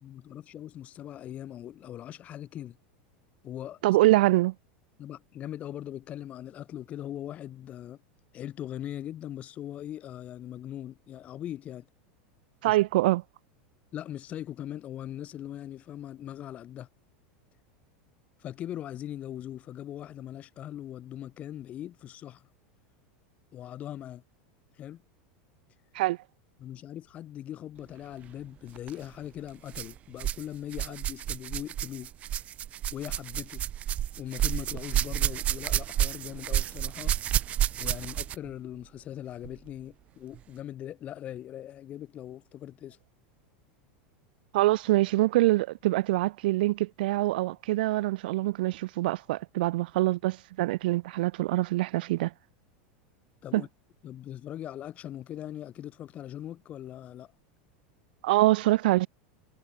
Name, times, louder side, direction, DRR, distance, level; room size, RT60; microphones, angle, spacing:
voice 1, 0.0-2.8 3.4-3.8 5.0-8.0 8.3-11.9 12.6-12.8 13.9-16.9 18.4-22.5 23.5-24.2 24.8-25.0 26.6-32.1 32.9-33.7 34.2-37.2 37.8-43.0 53.4-53.7 54.0-57.3, left 11 dB, 25° left, 2.0 m, -40 dB
voice 2, 3.8-4.5 12.6-13.2 25.9-26.2 44.5-52.3 53.5-53.6 58.2-59.1, right 18 dB, 70° right, 0.6 m, -24 dB
sound 1, 28.8-28.9 29.7-30.4 30.7-38.5 39.4-39.5 40.3-40.4, right 11 dB, 25° right, 0.8 m, -30 dB
supercardioid pair, 160°, 5 cm